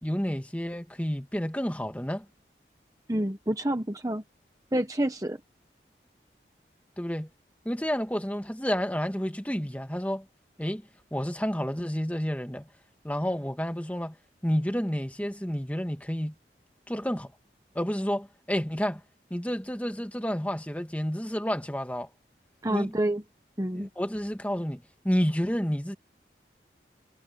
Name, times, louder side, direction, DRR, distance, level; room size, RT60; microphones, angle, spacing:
voice 1, 0.0-2.3 7.0-7.3 7.7-10.3 10.6-12.6 13.0-14.2 14.4-16.3 16.9-17.3 17.8-19.0 19.3-22.1 22.7-22.9 23.7-26.0, equal, 10° left, 1.8 m, -30 dB
voice 2, 3.1-4.2 4.7-5.4 22.6-23.2 23.6-23.9, right 1 dB, 20° right, 1.0 m, -28 dB
head